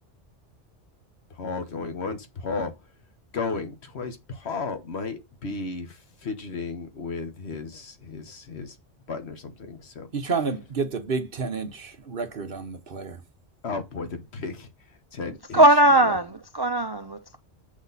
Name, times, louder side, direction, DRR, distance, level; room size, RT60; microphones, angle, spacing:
voice 1, 1.4-2.7 3.3-5.9 6.2-8.7 9.1-10.1 13.6-14.7 15.1-15.6 16.0-16.2, left 4 dB, 65° left, 1.5 m, -33 dB
voice 2, 10.1-13.2, right 4 dB, 55° right, 1.1 m, -30 dB
voice 3, 15.5-17.4, right 1 dB, 30° right, 0.4 m, -19 dB
8.3 x 6.3 x 4.1 m
omnidirectional pair, 1.2 m